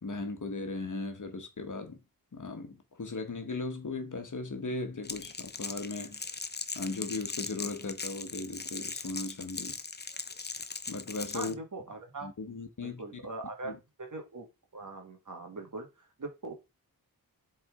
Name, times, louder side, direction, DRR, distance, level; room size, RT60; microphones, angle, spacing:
voice 1, 0.0-2.0 2.3-6.3 6.7-9.8 10.9-11.6 12.2-13.0 13.6-13.8, left 3 dB, 50° left, 1.6 m, -37 dB
Crackle, 5.0-11.5, left 4 dB, 25° left, 0.7 m, -39 dB
voice 2, 11.3-12.3 12.8-14.5 14.7-16.5, right 3 dB, 50° right, 2.0 m, -41 dB
7.4 x 4.3 x 3.7 m
cardioid pair, 65°, 38 cm